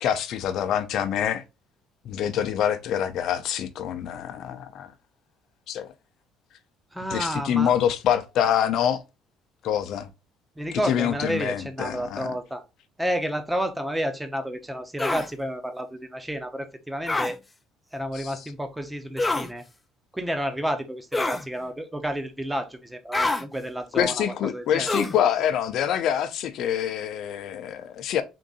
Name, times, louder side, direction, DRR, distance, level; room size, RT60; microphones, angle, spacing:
voice 1, 0.0-1.4 2.0-4.9 5.7-5.9 7.1-9.0 9.6-10.1 10.9-12.3 18.1-18.3 23.9-28.2, left 9 dB, 65° left, 0.6 m, -25 dB
voice 2, 6.9-7.7 10.6-12.6 13.0-17.4 17.9-19.6 20.1-25.1, equal, 5° right, 0.8 m, -30 dB
sound 1, 15.0-15.3 17.1-17.3 19.2-19.5 21.1-21.5 23.1-23.4 24.9-25.2, left 2 dB, 15° left, 0.4 m, -26 dB
3.8 x 2.6 x 3.9 m
cardioid pair, 100°, 0 cm